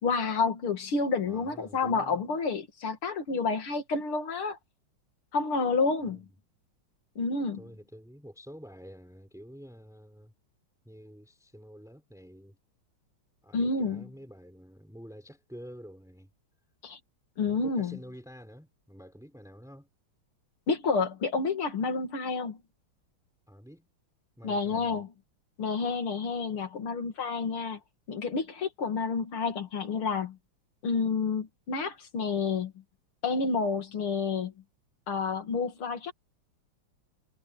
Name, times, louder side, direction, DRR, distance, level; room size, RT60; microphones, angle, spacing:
voice 1, 0.0-4.6 5.3-6.3 7.2-7.6 13.5-14.1 16.8-17.0 17.4-18.0 20.7-22.6 24.4-25.1 25.6-27.8 28.1-30.4 30.8-32.7 33.2-34.5 35.1-36.1, left 4 dB, 85° left, 3.3 m, -29 dB
voice 2, 1.2-2.3 6.0-6.4 7.5-10.3 10.8-12.6 13.4-16.3 17.4-19.9 23.5-23.9 24.4-25.0, equal, ahead, 5.2 m, -49 dB
omnidirectional pair, 2.3 m